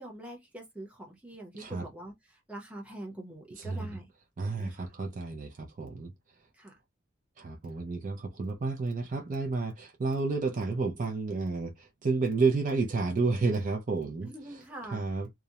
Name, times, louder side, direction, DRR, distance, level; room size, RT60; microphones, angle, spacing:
voice 1, 0.0-4.1 4.4-4.9 6.5-6.8 14.2-15.0, right 1 dB, 5° right, 0.7 m, -44 dB
voice 2, 1.5-1.8 3.6-3.9 4.4-6.1 7.4-14.3 14.9-15.3, right 3 dB, 40° right, 0.5 m, -31 dB
2.4 x 2.0 x 2.8 m
head